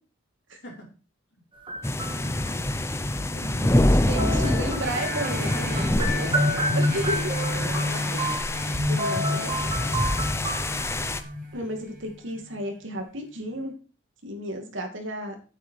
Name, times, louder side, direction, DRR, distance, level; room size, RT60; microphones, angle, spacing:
sound 1, 1.6-2.5 4.2-8.7 9.0-11.1, right 1 dB, 25° right, 1.6 m, -32 dB
sound 2, 1.8-11.2, left 1 dB, 10° left, 0.6 m, -26 dB
voice 1, 1.9-2.7 6.2-6.6 7.3-8.4, left 1 dB, 55° left, -2 dB, 4.9 m, -41 dB
voice 2, 3.3-6.3 6.7-7.3 8.9-9.7 11.5-13.7 14.2-15.4, right 1 dB, 65° right, 4 dB, 2.5 m, -33 dB
sound 3, 4.8-12.0 12.6-12.7, left 1 dB, 45° right, 3.7 m, -29 dB
8.9 x 8.3 x 4.7 m, 0.35 s
head